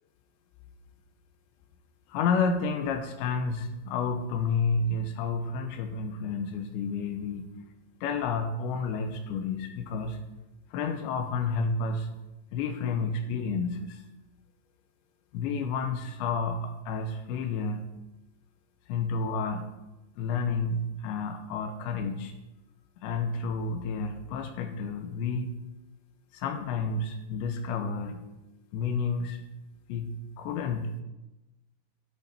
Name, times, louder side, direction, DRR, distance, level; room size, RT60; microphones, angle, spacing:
voice 1, 2.1-7.5 8.0-10.2 10.7-12.1 12.5-14.0 15.3-17.9 18.9-19.7 20.2-22.3 23.0-25.6 26.3-28.3 28.7-29.4 29.9-31.0, left 4 dB, 80° left, 6 dB, 3.3 m, -30 dB
13.0 x 9.6 x 4.4 m, 1.0 s
omnidirectional pair, 5.3 m